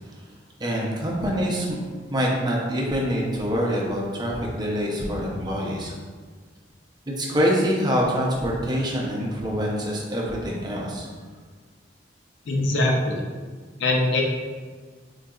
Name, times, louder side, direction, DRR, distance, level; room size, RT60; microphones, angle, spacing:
voice 1, 0.6-1.8 2.1-5.9 7.2-11.1, equal, 25° right, -3 dB, 0.5 m, -25 dB
voice 2, 12.5-13.2 13.8-14.2, left 2 dB, 80° left, 0 dB, 0.4 m, -22 dB
3.9 x 2.6 x 2.3 m, 1.5 s
head